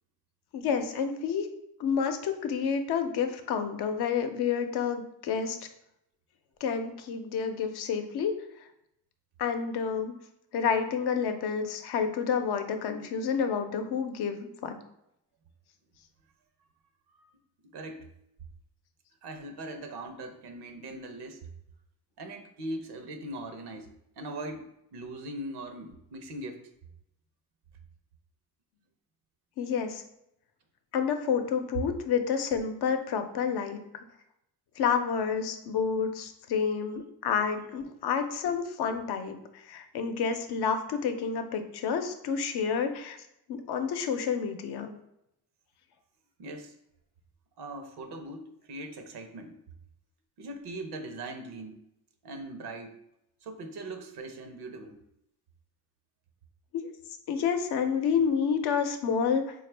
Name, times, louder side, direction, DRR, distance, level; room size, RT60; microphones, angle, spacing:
voice 1, 0.5-1.5 1.8-5.6 6.6-8.3 9.4-10.1 10.5-14.8 29.6-30.0 30.9-34.0 34.8-43.2 43.5-44.9 56.7-56.9 57.3-59.5, left 6 dB, 70° left, 7 dB, 0.6 m, -29 dB
voice 2, 17.6-18.1 19.2-21.5 22.2-23.9 24.2-26.6 46.4-46.8 47.6-49.6 50.4-51.8 52.2-53.0 53.4-55.0, right 1 dB, 75° right, 6 dB, 0.7 m, -40 dB
4.0 x 2.4 x 3.3 m, 0.80 s
supercardioid pair, 50°, 40 cm